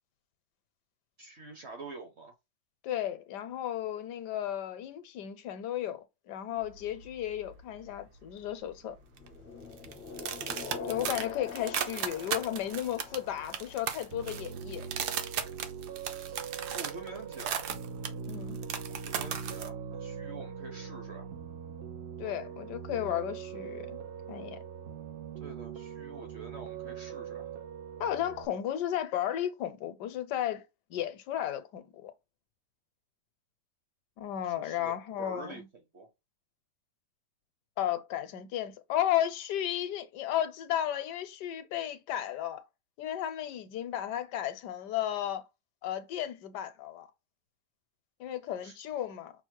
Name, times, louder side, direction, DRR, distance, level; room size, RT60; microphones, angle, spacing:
voice 1, 1.2-2.3 16.7-17.7 18.9-21.3 25.4-27.5 34.4-36.1 48.6-48.8, right 3 dB, 50° right, 0.8 m, -46 dB
voice 2, 2.8-9.0 10.8-14.9 18.3-18.6 22.2-24.0 24.3-24.6 28.0-32.1 34.2-35.6 37.8-42.6 43.0-45.4 45.8-47.1 48.2-49.3, left 11 dB, 75° left, 1.2 m, -34 dB
sound 1, 6.6-8.0 8.3-8.7 9.2-19.7, right 8 dB, 70° right, 1.2 m, -37 dB
sound 2, 9.2-14.1, left 5 dB, 50° left, 0.6 m, -43 dB
Piano, 14.1-28.5, right 7 dB, 90° right, 0.5 m, -42 dB
5.7 x 2.1 x 4.5 m
omnidirectional pair, 1.9 m